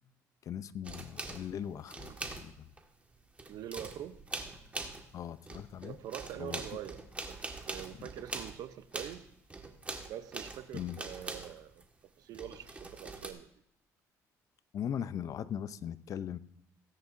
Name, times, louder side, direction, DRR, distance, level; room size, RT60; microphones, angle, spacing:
voice 1, 0.4-2.7 5.1-6.0 6.4-6.8 8.0-8.1 10.7-11.0 14.7-16.4, left 9 dB, 55° left, 15 dB, 0.6 m, -39 dB
sound 1, 0.8-2.8 3.1-5.2 5.5-11.8 12.3-13.3, right 3 dB, 20° right, 1.7 m, -43 dB
voice 2, 3.5-4.2 5.8-7.0 7.3-9.3 10.1-11.8 12.2-13.5, right 11 dB, 70° right, 13 dB, 0.7 m, -44 dB
17.5 x 9.7 x 2.6 m, 0.76 s
cardioid pair, 90°, 7 cm